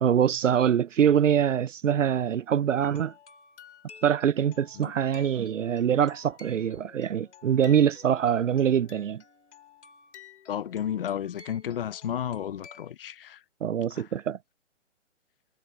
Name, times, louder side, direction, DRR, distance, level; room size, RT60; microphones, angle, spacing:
voice 1, 0.0-3.1 4.0-9.2 13.6-14.4, right 9 dB, 80° right, 0.6 m, -24 dB
sound 1, 2.8-12.9, left 6 dB, 65° left, 3.0 m, -52 dB
voice 2, 10.5-13.4 13.9-14.1, left 10 dB, 50° left, 0.7 m, -32 dB
hypercardioid pair, 150°, 37 cm